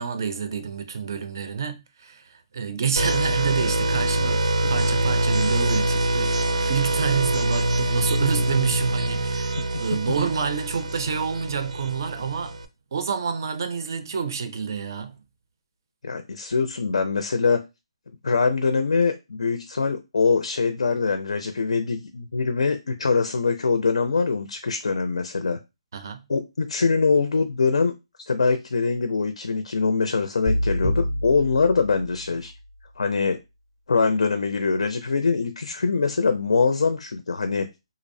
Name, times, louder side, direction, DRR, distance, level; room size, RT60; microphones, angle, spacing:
voice 1, 0.0-12.6 12.9-15.2 25.9-26.3, right 6 dB, 35° right, 0.4 m, -28 dB
sound 1, 3.0-12.6, right 1 dB, 85° right, 0.5 m, -24 dB
voice 2, 16.0-17.6 18.2-25.6 26.3-27.9 28.3-32.5 33.0-33.4 33.9-37.7, left 4 dB, 75° left, 0.4 m, -23 dB
sound 2, 30.5-32.6, equal, 20° left, 0.5 m, -27 dB
2.5 x 2.0 x 2.6 m
hypercardioid pair, 175°, 3 cm